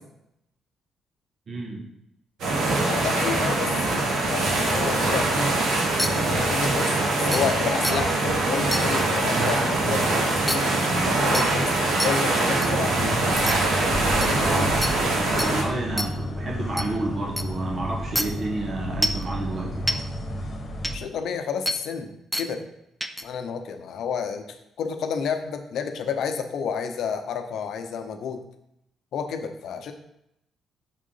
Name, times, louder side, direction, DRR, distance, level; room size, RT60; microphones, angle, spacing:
voice 1, 1.5-1.8 14.3-14.7 15.0-20.0, right 2 dB, 45° right, -2 dB, 1.1 m, -30 dB
sound 1, 2.4-15.6, right 2 dB, 80° right, 1.5 m, -23 dB
voice 2, 2.8-5.6 6.1-6.9 7.2-11.7 12.0-13.2 14.1-14.6 20.8-22.1 22.4-22.7 23.2-28.4 29.1-29.9, left 6 dB, 75° left, 6 dB, 0.6 m, -30 dB
sound 2, 6.0-6.1 6.8-6.9 7.3-7.4 7.8-8.0 8.7-8.8 10.5-10.6 11.3-11.5 12.0-12.1 12.6-12.7 13.5-13.6 14.2-14.3 14.8-14.9 15.4-15.5 16.0-16.1 16.8-16.9 17.4-17.5 18.2-18.3 19.0-19.2 19.9-20.0 20.8-20.9 21.7-21.8 22.3-22.5 23.0-23.2, equal, ahead, 0.5 m, -26 dB
sound 3, 12.9-21.0, left 1 dB, 40° left, 1.2 m, -32 dB
6.0 x 3.7 x 5.4 m, 0.80 s
cardioid pair, 90°, 0 cm